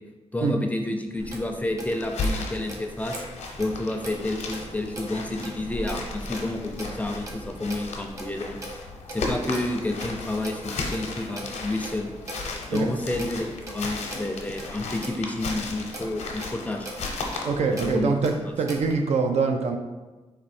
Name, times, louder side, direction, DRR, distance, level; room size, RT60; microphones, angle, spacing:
voice 1, 0.3-3.2 3.6-8.6 9.1-10.6 10.9-12.1 12.7-16.9 17.7-18.2 18.5-18.6, left 2 dB, 15° left, 4 dB, 0.5 m, -30 dB
Clock, 1.2-18.9, right 1 dB, 25° right, 0.9 m, -41 dB
sound 1, 1.8-18.0, left 3 dB, 80° left, 0.8 m, -35 dB
voice 2, 17.4-19.8, right 4 dB, 70° right, 4 dB, 0.5 m, -24 dB
4.3 x 2.7 x 4.2 m, 1.2 s
cardioid pair, 100°, 11 cm